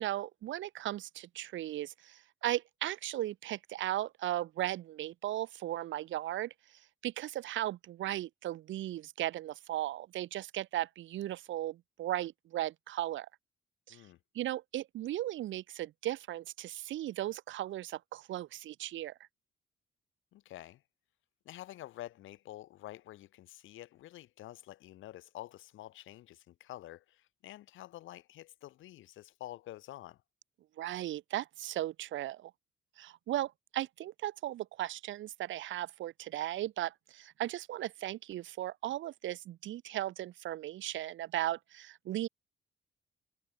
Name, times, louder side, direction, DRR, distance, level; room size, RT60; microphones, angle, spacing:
voice 1, 0.0-6.5 7.0-13.3 13.9-14.0 14.3-19.1 30.8-32.5 33.0-42.3, right 14 dB, 75° right, 1.0 m, -36 dB
voice 2, 20.3-20.8 21.4-30.2, left 14 dB, 80° left, 1.0 m, -48 dB
cardioid pair, 90°, 20 cm